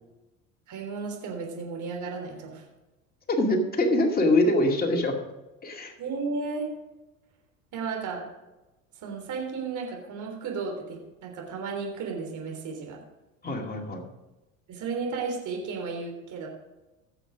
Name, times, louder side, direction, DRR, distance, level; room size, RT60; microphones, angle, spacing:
voice 1, 0.7-2.6 6.0-6.7 7.7-8.2 8.9-13.0 14.7-16.5, right 4 dB, 45° right, 1 dB, 3.5 m, -34 dB
voice 2, 3.3-5.2 5.6-5.9 13.4-14.1, left 1 dB, 20° left, 1 dB, 2.3 m, -24 dB
16.5 x 6.7 x 5.0 m, 1.0 s
hypercardioid pair, 85°, 39 cm